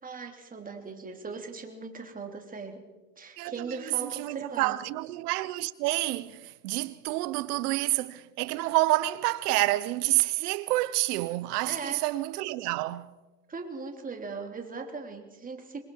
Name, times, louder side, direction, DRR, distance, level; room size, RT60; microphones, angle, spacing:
voice 1, 0.0-2.8 3.2-4.8 11.6-12.0 13.5-15.8, right 4 dB, 15° right, 3.2 m, -39 dB
voice 2, 3.4-13.1, right 18 dB, 70° right, 1.2 m, -28 dB
26.0 x 21.5 x 4.8 m
supercardioid pair, 115°, 47 cm